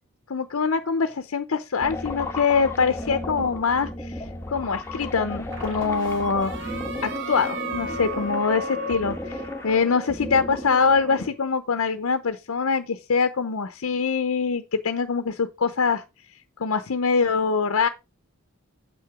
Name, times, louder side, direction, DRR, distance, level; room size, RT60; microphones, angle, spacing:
voice 1, 0.3-4.2 4.5-6.8 7.0-16.0 16.6-17.9, left 5 dB, 80° left, 0.7 m, -24 dB
sound 1, 1.8-11.3, left 1 dB, 10° left, 1.2 m, -34 dB
sound 2, 2.8-3.6 5.5-9.1, right 4 dB, 60° right, 2.4 m, -41 dB
sound 3, 6.0-11.4, left 1 dB, 40° right, 1.8 m, -36 dB
7.6 x 5.8 x 4.7 m
head